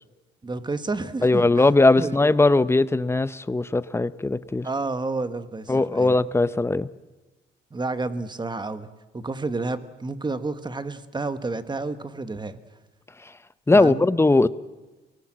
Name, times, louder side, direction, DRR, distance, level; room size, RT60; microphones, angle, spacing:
voice 1, 0.4-1.5 2.0-2.2 4.6-6.2 7.7-8.9 9.1-12.6 13.7-14.0, right 3 dB, 20° right, 12 dB, 1.3 m, -30 dB
voice 2, 1.2-4.7 5.7-6.9 13.7-14.5, left 2 dB, 15° left, 16 dB, 0.7 m, -19 dB
23.0 x 18.5 x 7.5 m, 1.2 s
cardioid pair, 90°, 20 cm